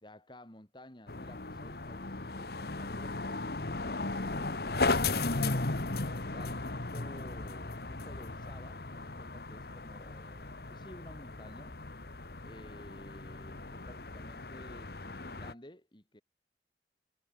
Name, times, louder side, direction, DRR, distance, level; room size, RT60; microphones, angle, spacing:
voice 1, 0.0-3.5 6.1-11.8 12.4-16.2, left 1 dB, 25° left, 3.7 m, -53 dB
sound 1, 1.1-15.5, left 3 dB, 60° left, 1.5 m, -36 dB
head